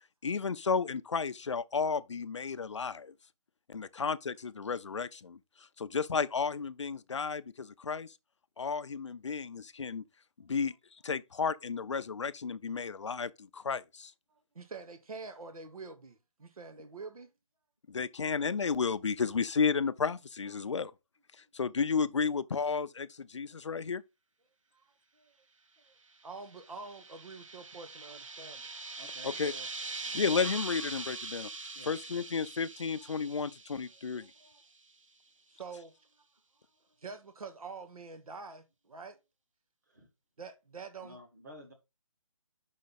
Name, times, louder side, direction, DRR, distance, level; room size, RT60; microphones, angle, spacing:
voice 1, 0.2-3.1 3.7-5.4 5.8-8.1 8.6-10.0 10.4-10.7 11.0-14.1 17.9-20.9 21.5-24.0 29.2-29.5 30.1-31.5 31.9-34.3, left 5 dB, 55° left, 0.5 m, -32 dB
voice 2, 14.5-17.3 24.7-24.8 25.2-25.3 25.9-26.0 26.2-28.7 34.1-34.5 35.5-35.9 37.0-39.2 40.4-41.2, right 4 dB, 80° right, 1.1 m, -46 dB
sound 1, 26.3-34.6, right 3 dB, 65° right, 0.9 m, -42 dB
voice 3, 29.0-29.7 30.0-30.3 31.7-32.0 39.9-40.1 41.0-41.7, equal, 30° right, 1.8 m, -52 dB
5.6 x 5.2 x 4.0 m
hypercardioid pair, 180°, 18 cm